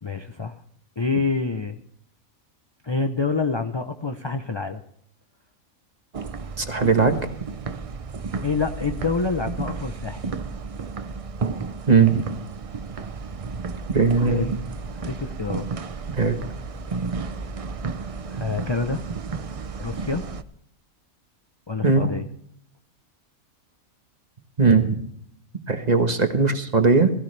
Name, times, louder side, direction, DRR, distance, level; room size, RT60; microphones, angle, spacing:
voice 1, 0.0-0.6 1.0-1.8 2.8-4.8 8.4-10.2 14.2-14.5 15.0-15.7 18.3-19.0 19.8-20.2 21.7-22.3, left 4 dB, 35° left, 7 dB, 0.4 m, -27 dB
sound 1, 6.1-20.4, right 4 dB, 50° right, 0.4 m, -33 dB
voice 2, 6.6-7.2 11.9-12.2 13.9-14.6 16.2-16.4 21.8-22.1 24.6-24.9 25.7-27.1, right 4 dB, 30° right, 7 dB, 1.3 m, -19 dB
16.5 x 16.0 x 3.3 m, 0.68 s
omnidirectional pair, 1.5 m